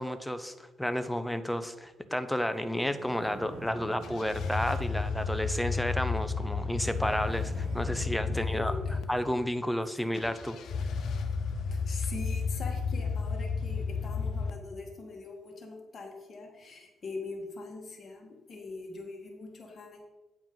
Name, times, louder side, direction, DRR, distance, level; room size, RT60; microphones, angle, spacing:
voice 1, 0.0-8.8 9.1-10.6, equal, 5° left, 10 dB, 0.7 m, -31 dB
sound 1, 2.8-5.9 6.8-9.5, right 2 dB, 70° right, 2.6 m, -48 dB
sound 2, 4.0-9.0 10.1-14.5, left 4 dB, 70° left, 0.8 m, -32 dB
voice 2, 8.3-9.0 11.4-20.0, left 3 dB, 45° left, 1 dB, 2.1 m, -43 dB
9.1 x 5.0 x 5.6 m, 1.1 s
cardioid pair, 90°, 0 cm